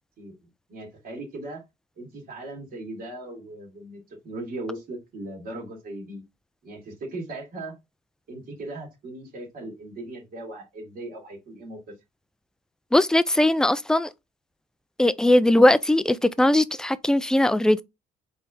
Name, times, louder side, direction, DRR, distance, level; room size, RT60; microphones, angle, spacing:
voice 1, 0.7-1.6 2.0-6.2 6.6-7.7 8.3-11.9, right 2 dB, 60° right, 2.5 m, -38 dB
voice 2, 12.9-14.1 15.0-17.8, left 1 dB, 5° left, 0.4 m, -19 dB
4.1 x 3.4 x 3.7 m
cardioid pair, 110°, 17 cm